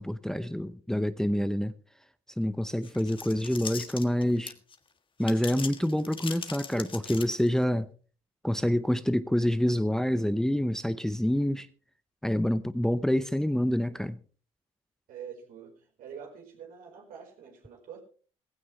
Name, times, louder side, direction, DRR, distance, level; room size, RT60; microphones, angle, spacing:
voice 1, 0.0-1.7 2.4-4.5 5.2-7.9 8.4-11.7 12.2-14.2, equal, 5° left, 0.7 m, -27 dB
sound 1, 2.8-4.8 5.2-7.6, left 5 dB, 35° left, 1.6 m, -40 dB
voice 2, 15.1-18.0, right 7 dB, 70° right, 4.8 m, -45 dB
16.0 x 15.5 x 3.3 m
supercardioid pair, 70°, 15 cm